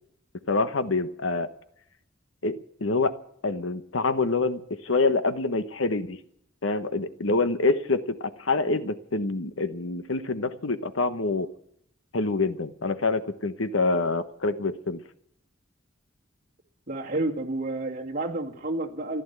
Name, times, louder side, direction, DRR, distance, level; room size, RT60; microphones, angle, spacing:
voice 1, 0.5-1.5 2.4-3.1 3.4-6.2 6.6-11.5 12.1-15.0, left 3 dB, 90° left, 11 dB, 1.1 m, -26 dB
voice 2, 16.9-19.2, right 2 dB, 45° right, -1 dB, 2.3 m, -30 dB
15.0 x 11.5 x 8.2 m, 0.72 s
head